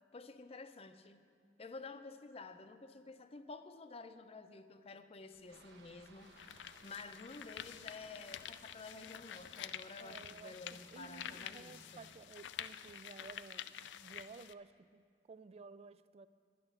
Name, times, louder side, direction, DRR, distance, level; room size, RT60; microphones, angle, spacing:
voice 1, 0.1-1.3 1.6-6.3 6.8-12.1, left 3 dB, 35° left, 10 dB, 0.5 m, -51 dB
sound 1, 5.3-5.4 6.1-14.5, left 10 dB, 85° left, 0.4 m, -49 dB
Aircraft, 5.5-12.3, right 3 dB, 70° right, 1.1 m, -64 dB
voice 2, 10.0-16.3, right 4 dB, 35° right, 15 dB, 0.3 m, -55 dB
11.0 x 10.0 x 6.7 m, 2.2 s
head